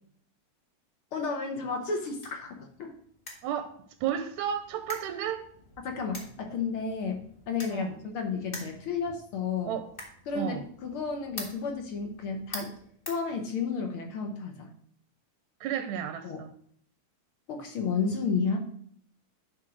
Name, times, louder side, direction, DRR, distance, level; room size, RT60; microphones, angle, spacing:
voice 1, 1.1-2.9 5.8-9.8 10.3-12.7 13.1-14.7 16.2-16.4 17.5-18.7, left 5 dB, 60° left, 1.6 m, -32 dB
sound 1, 1.7-13.9, left 1 dB, 25° left, 1.3 m, -47 dB
voice 2, 3.4-5.4 7.7-8.0 9.7-9.9 10.3-10.6 15.6-16.5, right 9 dB, 85° right, 1.9 m, -32 dB
11.0 x 3.7 x 6.1 m
omnidirectional pair, 3.4 m